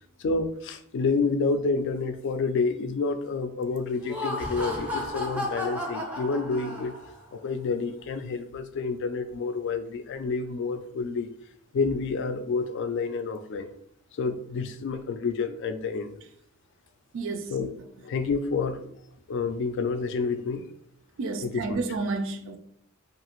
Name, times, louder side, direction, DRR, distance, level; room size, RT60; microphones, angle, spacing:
voice 1, 0.2-6.9 7.3-11.3 11.7-13.7 14.1-16.2 17.5-17.7 18.0-19.0 19.3-20.6 21.4-21.8, left 4 dB, 55° left, 0.3 m, -29 dB
Laughter, 3.9-7.2, left 1 dB, 5° right, 0.5 m, -33 dB
voice 2, 17.1-17.5 21.2-22.6, right 3 dB, 65° right, 0.4 m, -30 dB
2.7 x 2.4 x 2.9 m
head